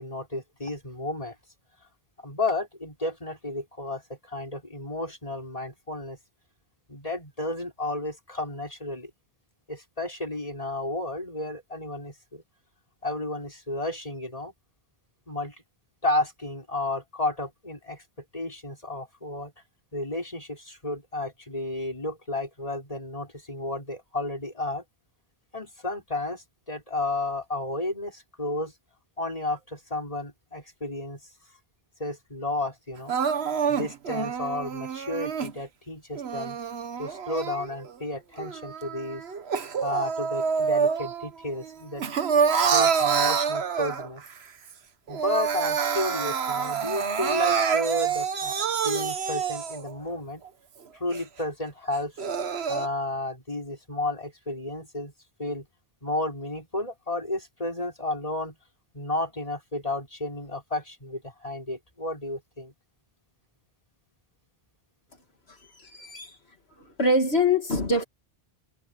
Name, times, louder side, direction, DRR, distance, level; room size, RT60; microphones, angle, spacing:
voice 1, 0.0-1.3 2.2-6.2 6.9-9.1 9.7-12.4 13.0-14.5 15.3-15.6 16.0-18.0 18.3-19.5 19.9-24.8 25.5-28.7 29.2-31.2 32.0-33.1 33.7-36.6 37.0-39.2 39.8-42.0 42.5-44.2 45.1-48.6 48.8-50.4 51.0-52.1 52.7-55.1 55.4-55.6 56.0-58.5 58.9-62.7, left 2 dB, 35° left, 5.7 m, -32 dB
Crying sobbing, 33.1-35.5 36.1-37.9 38.4-41.3 41.6-44.3 44.7-44.8 45.1-49.9 50.5-50.6 51.1-51.2 51.9-52.9, right 6 dB, 80° right, 1.4 m, -27 dB
voice 2, 65.5-66.4 66.8-68.0, left 2 dB, 75° left, 2.5 m, -25 dB
omnidirectional pair, 1.1 m